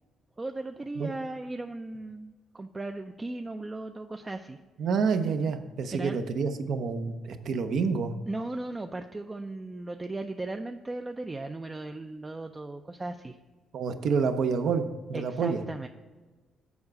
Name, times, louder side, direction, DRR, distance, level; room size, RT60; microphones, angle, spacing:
voice 1, 0.4-4.6 5.9-6.2 8.3-13.4 15.1-15.9, right 2 dB, 20° right, 6 dB, 0.4 m, -37 dB
voice 2, 4.8-8.1 13.7-15.6, right 5 dB, 70° right, 8 dB, 0.7 m, -28 dB
7.1 x 4.8 x 6.4 m, 1.3 s
cardioid pair, 90°, 0 cm